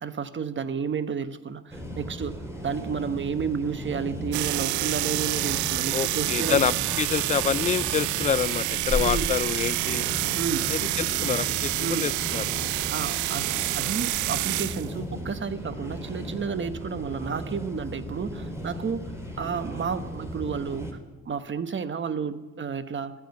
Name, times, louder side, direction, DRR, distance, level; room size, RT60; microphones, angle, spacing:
voice 1, 0.0-6.6 8.9-9.3 10.3-10.7 11.8-12.1 12.9-19.1 19.4-21.0 21.3-23.1, right 6 dB, 35° right, 12 dB, 1.2 m, -31 dB
sound 1, 1.7-20.9, equal, 10° right, 3.9 m, -36 dB
sound 2, 4.3-14.9, right 17 dB, 65° right, 0.5 m, -28 dB
voice 2, 5.9-10.1 10.7-12.4, left 7 dB, 25° left, 21 dB, 0.4 m, -27 dB
14.0 x 9.3 x 9.2 m, 1.2 s
hypercardioid pair, 60°, 32 cm